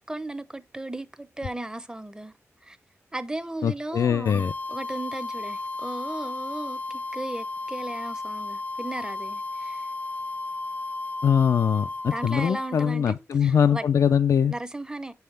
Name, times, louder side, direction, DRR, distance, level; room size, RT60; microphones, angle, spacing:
voice 1, 0.1-2.3 2.6-2.8 3.1-9.9 12.1-13.9 14.5-15.1, right 2 dB, 15° right, 0.7 m, -36 dB
voice 2, 3.6-4.5 11.2-14.5, left 7 dB, 85° left, 0.4 m, -22 dB
sound 1, 4.3-12.9, left 3 dB, 30° left, 0.5 m, -34 dB
7.7 x 5.6 x 3.3 m
wide cardioid pair, 95°, 5 cm